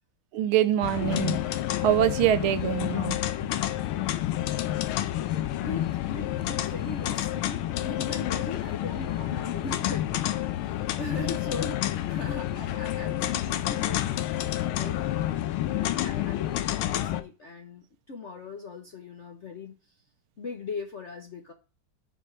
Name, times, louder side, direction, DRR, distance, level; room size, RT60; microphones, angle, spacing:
voice 1, 0.3-1.4 1.8-3.1, right 11 dB, 75° right, 1.4 m, -24 dB
sound 1, 0.8-17.2, left 13 dB, 80° left, 1.5 m, -29 dB
voice 2, 5.6-10.4 10.6-15.0 15.8-19.8 20.4-21.5, left 3 dB, 55° left, 0.8 m, -39 dB
5.7 x 5.2 x 5.9 m
omnidirectional pair, 2.4 m